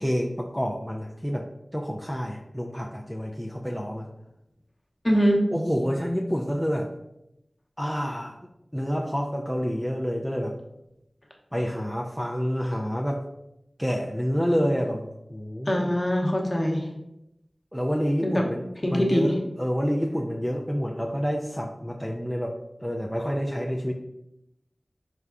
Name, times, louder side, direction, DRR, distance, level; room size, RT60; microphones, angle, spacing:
voice 1, 0.0-1.5 1.7-4.1 5.5-6.9 7.8-8.4 8.7-10.5 11.5-13.2 13.8-15.9 17.7-23.9, equal, ahead, -1 dB, 0.4 m, -28 dB
voice 2, 5.0-5.5 15.7-16.9 18.2-18.4 18.8-19.3, equal, 35° left, 0 dB, 0.8 m, -22 dB
4.3 x 3.4 x 2.4 m, 0.85 s
wide cardioid pair, 50°, 0 cm